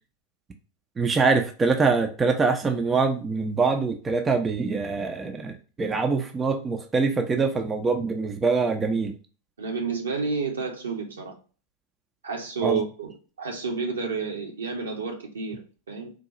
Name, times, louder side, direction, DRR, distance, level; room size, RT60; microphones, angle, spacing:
voice 1, 1.0-9.1 12.6-12.8, right 4 dB, 15° right, 0.4 m, -24 dB
voice 2, 9.6-11.3 12.2-13.1 13.4-16.1, right 4 dB, 70° right, 0.9 m, -30 dB
3.8 x 2.2 x 2.8 m
figure-of-eight pair, 90°, 0 cm